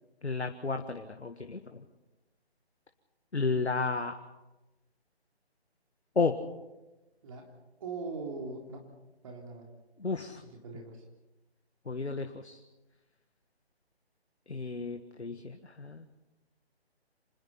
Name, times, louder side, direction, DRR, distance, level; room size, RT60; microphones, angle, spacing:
voice 1, 0.2-1.8 3.3-4.1 6.1-6.4 10.0-10.4 11.8-12.6 14.5-16.1, left 4 dB, 85° left, 6 dB, 1.8 m, -32 dB
voice 2, 7.8-9.7 10.5-11.0, right 3 dB, 30° right, 1 dB, 3.5 m, -41 dB
26.5 x 20.5 x 5.9 m, 1.1 s
figure-of-eight pair, 155°, 33 cm